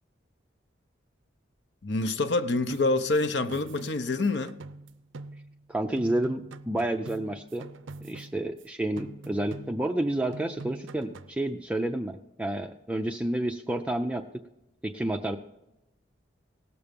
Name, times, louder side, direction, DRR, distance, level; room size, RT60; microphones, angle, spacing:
voice 1, 1.8-4.5, left 2 dB, 65° left, 0.7 m, -26 dB
sound 1, 2.7-5.7 6.0-8.7 9.0-10.0 10.3-11.4, right 3 dB, 80° right, 0.5 m, -45 dB
voice 2, 5.7-7.6 8.0-14.2 14.8-15.4, right 1 dB, 5° right, 0.4 m, -30 dB
17.5 x 7.0 x 5.2 m
head